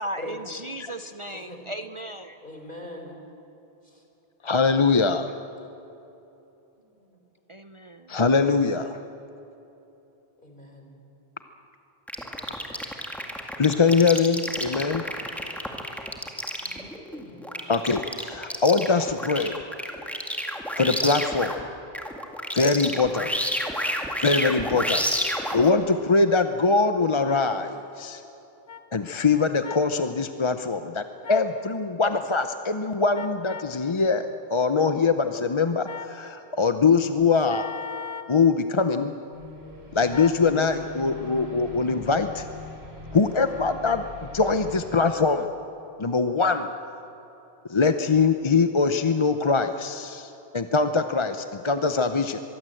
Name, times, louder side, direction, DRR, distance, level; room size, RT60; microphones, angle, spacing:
voice 1, 0.0-2.4 7.5-8.1, right 1 dB, 35° right, 8 dB, 0.7 m, -36 dB
voice 2, 1.3-1.7 2.4-3.2 3.8-4.0 6.9-7.2 10.4-11.0 16.6-17.7, left 1 dB, 50° left, 2 dB, 4.0 m, -43 dB
voice 3, 4.4-5.3 8.1-9.0 13.6-15.0 17.7-19.5 20.8-21.5 22.5-23.3 24.2-25.0 25.5-28.2 28.9-31.0 31.3-37.7 38.3-39.1 39.9-42.5 43.1-44.1 44.3-45.5 46.0-46.7 47.7-52.4, left 4 dB, 30° left, 8 dB, 0.7 m, -22 dB
sound 1, 12.1-21.6 21.9-25.7, equal, ahead, 2.0 m, -30 dB
sound 2, 27.2-27.4 28.7-28.8 29.6-29.9 31.2-31.5 33.1-33.7 35.8-36.2 37.5-38.3 40.1-40.4, left 7 dB, 75° left, 1.5 m, -38 dB
sound 3, 39.3-44.9, left 3 dB, 75° right, 4.3 m, -42 dB
23.0 x 23.0 x 7.8 m, 3.0 s
omnidirectional pair, 1.1 m